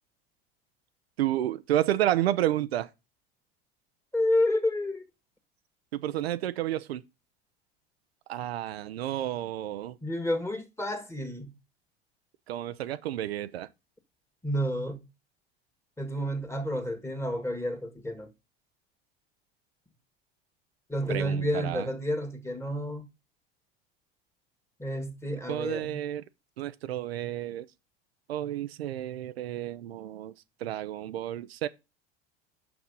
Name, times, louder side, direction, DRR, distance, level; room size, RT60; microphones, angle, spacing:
voice 1, 1.2-2.9 5.9-7.0 8.3-10.0 12.5-13.7 21.1-21.9 25.5-26.2 26.6-27.7 28.3-30.3 30.6-31.7, right 12 dB, 80° right, 0.6 m, -30 dB
voice 2, 4.1-5.0 10.0-11.5 14.4-15.0 16.0-18.3 20.9-23.1 24.8-26.0, left 1 dB, 10° left, 1.8 m, -30 dB
6.1 x 6.0 x 5.4 m
hypercardioid pair, 75°, 30 cm